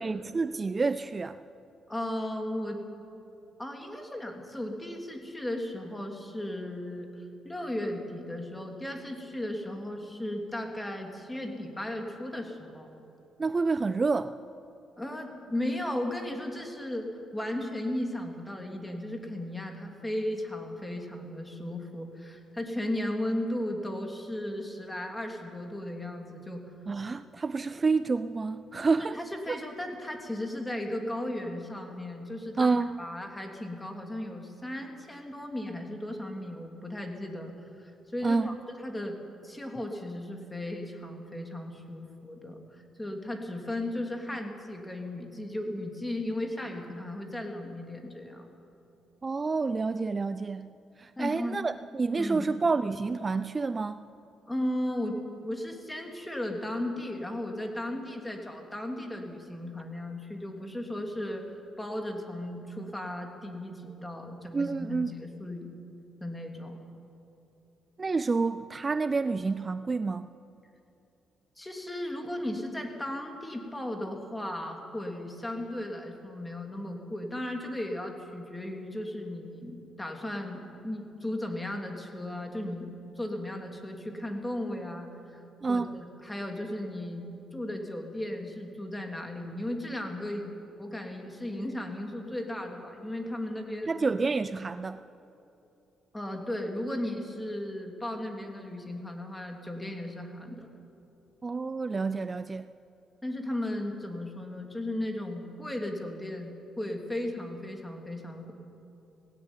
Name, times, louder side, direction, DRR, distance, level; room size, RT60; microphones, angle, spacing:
voice 1, 0.0-1.4 13.4-14.4 26.9-29.2 29.5-29.6 32.6-33.0 38.2-38.5 49.2-54.0 64.5-65.1 68.0-70.3 85.6-86.0 93.9-95.0 101.4-102.7, right 4 dB, 30° right, 13 dB, 0.4 m, -29 dB
voice 2, 1.9-2.8 3.6-12.9 15.0-26.6 29.0-32.7 33.0-38.6 38.8-39.2 39.4-48.5 51.2-51.6 52.2-52.5 54.5-61.4 61.8-65.7 66.2-66.8 71.6-85.4 85.7-87.3 87.5-93.9 96.1-100.7 103.2-108.5, left 1 dB, 10° left, 3 dB, 3.0 m, -36 dB
18.5 x 16.5 x 9.8 m, 2.9 s
cardioid pair, 90°, 0 cm